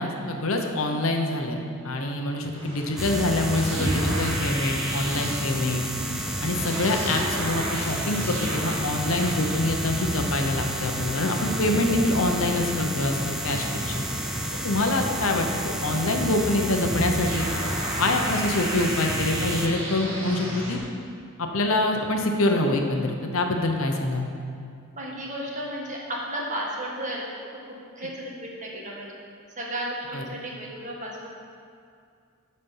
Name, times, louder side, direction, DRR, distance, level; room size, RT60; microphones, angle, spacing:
voice 1, 0.0-5.9 6.4-14.0 14.6-17.5 18.0-20.8 21.4-24.3 30.1-30.2, left 2 dB, 65° left, 3 dB, 0.9 m, -25 dB
sound 1, 2.5-20.8, equal, 65° right, 2.2 m, -36 dB
sound 2, 3.0-19.7, equal, ahead, 0.5 m, -30 dB
voice 2, 25.0-29.1 29.6-31.3, right 1 dB, 35° right, -3 dB, 1.5 m, -34 dB
12.0 x 4.3 x 5.5 m, 2.3 s
head